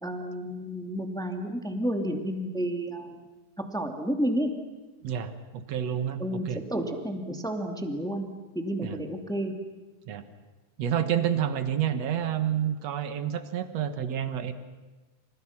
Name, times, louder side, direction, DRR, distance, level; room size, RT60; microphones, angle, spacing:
voice 1, 0.0-3.2 3.7-4.5 6.2-8.3 8.5-9.5, equal, ahead, 4 dB, 1.1 m, -31 dB
voice 2, 5.0-6.6 8.8-9.0 10.1-10.2 10.8-14.5, right 9 dB, 70° right, 10 dB, 1.5 m, -29 dB
28.5 x 28.5 x 6.0 m, 1.2 s
omnidirectional pair, 5.1 m